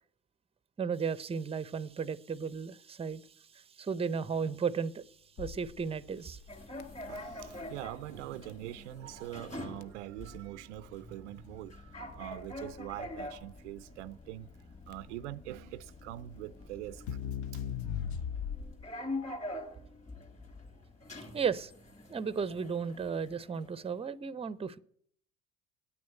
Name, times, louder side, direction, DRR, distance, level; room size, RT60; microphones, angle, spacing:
voice 1, 0.8-3.2 3.5-5.0 5.4-6.4 21.3-21.7 22.1-24.8, right 6 dB, 15° right, 0.6 m, -34 dB
Crackle, 5.4-19.0, left 8 dB, 55° left, 0.7 m, -42 dB
sound 1, 6.5-24.0, left 1 dB, 20° left, 3.0 m, -45 dB
voice 2, 7.1-14.5 14.9-17.2, right 15 dB, 80° right, 0.5 m, -43 dB
9.5 x 8.8 x 9.2 m
hypercardioid pair, 65°, 35 cm